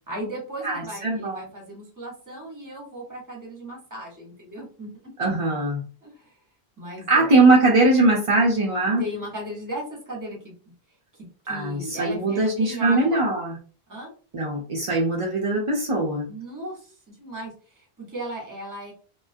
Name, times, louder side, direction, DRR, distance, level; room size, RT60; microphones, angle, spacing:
voice 1, 0.1-5.3 6.0-6.4 6.8-7.3 8.8-10.5 11.4-13.2 13.9-14.1 16.3-18.9, right 1 dB, 20° right, -1 dB, 0.8 m, -36 dB
voice 2, 0.6-1.4 5.2-5.8 7.1-9.0 11.5-13.6 14.3-16.3, right 2 dB, 55° right, -2 dB, 0.3 m, -21 dB
2.3 x 2.2 x 2.4 m, 0.39 s
omnidirectional pair, 1.1 m